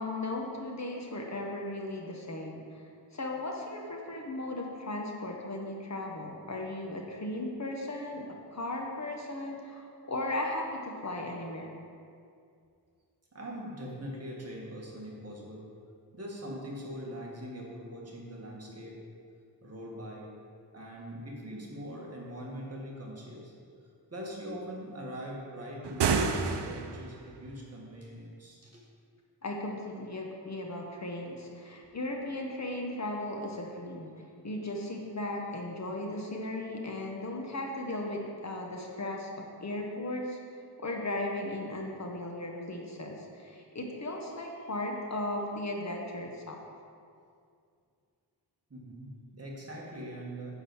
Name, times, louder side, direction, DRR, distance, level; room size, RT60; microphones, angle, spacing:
voice 1, 0.0-2.8 3.1-8.2 8.5-11.7 29.4-34.1 34.4-40.4 40.8-46.6, left 1 dB, 40° left, 0 dB, 1.1 m, -36 dB
voice 2, 13.3-15.7 16.1-19.0 19.6-20.3 20.7-23.5 24.1-28.9 48.7-50.5, equal, 35° right, -3 dB, 1.7 m, -42 dB
sound 1, 25.8-27.1, right 5 dB, 80° right, 0.6 m, -29 dB
9.6 x 4.1 x 7.0 m, 2.3 s
wide cardioid pair, 140°, 41 cm